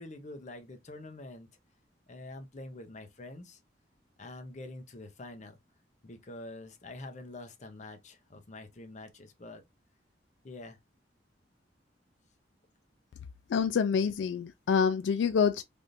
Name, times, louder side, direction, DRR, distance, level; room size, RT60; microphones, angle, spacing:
voice 1, 0.0-1.5 2.1-3.6 4.2-5.6 6.0-9.6 10.4-10.8, left 2 dB, 40° left, 0.7 m, -46 dB
voice 2, 13.5-15.6, left 6 dB, 80° left, 0.3 m, -27 dB
3.4 x 2.5 x 2.6 m
head